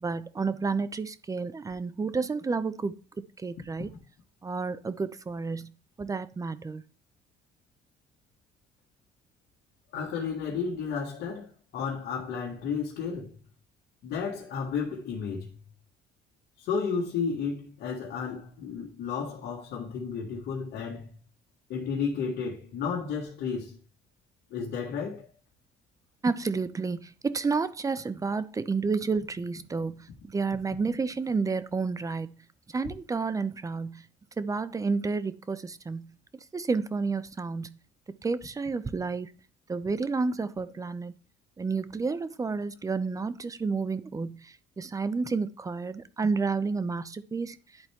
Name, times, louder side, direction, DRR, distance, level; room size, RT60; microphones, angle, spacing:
voice 1, 0.0-3.0 3.4-3.9 4.4-5.7 6.0-6.8 26.2-32.3 32.7-34.0 34.4-36.1 36.5-37.8 38.2-39.3 39.7-41.1 41.6-47.6, right 4 dB, 20° right, 0.6 m, -30 dB
voice 2, 9.9-13.4 14.0-15.5 16.6-21.1 21.7-23.8 24.5-25.3, left 6 dB, 75° left, 1.8 m, -32 dB
10.5 x 4.2 x 3.6 m
cardioid pair, 110°, 17 cm